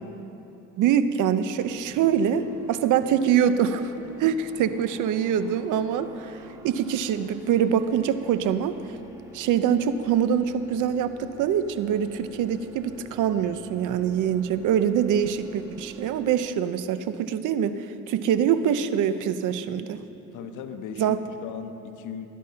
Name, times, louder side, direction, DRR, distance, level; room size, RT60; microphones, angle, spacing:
voice 1, 0.8-3.9 4.2-6.4 6.6-8.8 9.3-20.0 21.0-21.2, right 8 dB, 90° right, 12 dB, 0.8 m, -24 dB
sound 1, 1.6-16.3, right 1 dB, 10° right, 1.7 m, -47 dB
voice 2, 20.3-22.3, left 7 dB, 85° left, 8 dB, 1.0 m, -37 dB
20.5 x 10.5 x 5.7 m, 3.0 s
cardioid pair, 90°, 30 cm